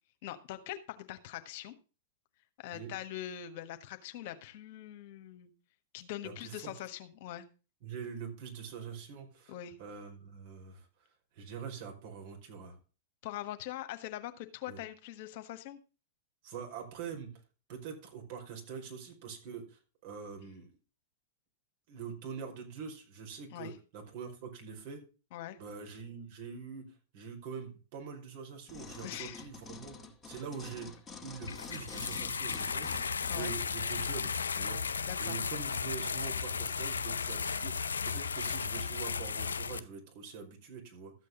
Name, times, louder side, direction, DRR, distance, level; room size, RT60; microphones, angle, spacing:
voice 1, 0.2-1.7 2.6-5.5 5.9-7.4 9.5-9.8 13.2-15.8 23.5-23.7 25.3-25.6 29.0-29.5 33.3-33.5 35.0-35.4, left 12 dB, 55° left, 9 dB, 1.4 m, -42 dB
voice 2, 6.2-6.7 7.8-9.5 9.8-10.9 11.3-12.8 14.7-14.8 16.4-17.3 17.7-20.7 21.9-25.0 25.6-26.8 27.1-30.0 30.2-30.9 31.2-33.0 33.3-34.8 35.2-41.1, right 6 dB, 50° right, 2 dB, 5.2 m, -44 dB
sound 1, 28.7-34.2 34.7-34.8, left 4 dB, 15° left, 2.0 m, -48 dB
sound 2, 31.4-39.8, left 6 dB, 80° left, 0.6 m, -35 dB
13.5 x 8.4 x 3.8 m, 0.34 s
figure-of-eight pair, 100°, 0 cm